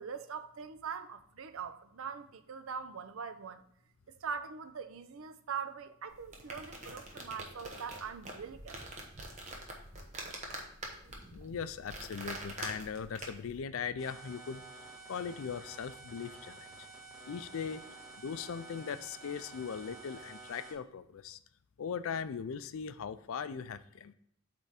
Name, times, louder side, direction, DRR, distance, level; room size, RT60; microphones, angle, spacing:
voice 1, 0.0-3.6 4.2-8.8, right 6 dB, 70° right, 0.5 m, -42 dB
sound 1, 6.1-13.6, right 1 dB, 30° right, 1.0 m, -45 dB
voice 2, 11.3-14.6 15.1-16.9 17.3-17.8 18.2-21.4 21.8-24.1, left 6 dB, 70° left, 0.4 m, -39 dB
sound 2, 14.0-20.7, right 3 dB, ahead, 1.2 m, -50 dB
8.0 x 3.5 x 4.2 m
head